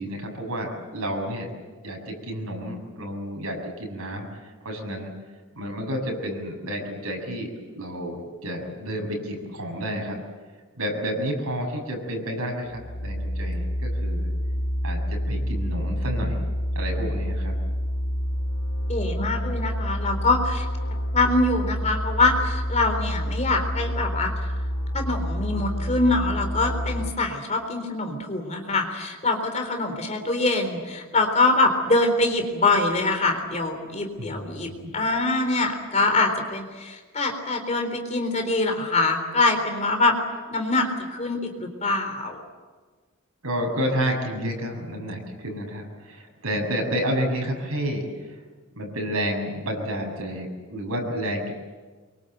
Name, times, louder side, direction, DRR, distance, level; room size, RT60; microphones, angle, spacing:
voice 1, 0.0-1.5 1.8-5.1 5.6-10.2 10.8-14.3 14.8-16.4 16.8-17.5 34.2-35.0 43.4-48.1 48.8-51.5, equal, 90° right, 2 dB, 6.9 m, -30 dB
sound 1, 12.6-27.1, equal, 85° left, 1.6 m, -28 dB
voice 2, 18.9-20.7 21.1-24.3 24.9-40.1 40.5-40.9 41.1-42.4, left 2 dB, 30° left, 5 dB, 3.7 m, -24 dB
25.0 x 23.5 x 8.1 m, 1.4 s
head